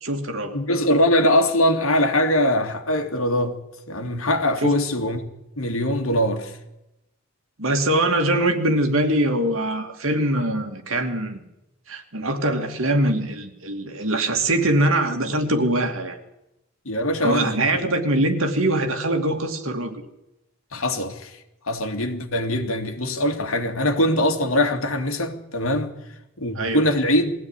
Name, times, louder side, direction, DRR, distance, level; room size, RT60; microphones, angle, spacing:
voice 1, 0.0-0.6 4.6-4.8 7.6-11.4 11.9-16.2 17.2-20.0 26.5-26.8, right 1 dB, 75° right, 2.6 m, -23 dB
voice 2, 0.5-3.6 3.9-5.2 5.6-6.5 16.9-17.8 20.7-21.3 21.7-25.9 26.4-27.3, left 1 dB, 80° left, 2.6 m, -22 dB
21.0 x 15.5 x 9.9 m
head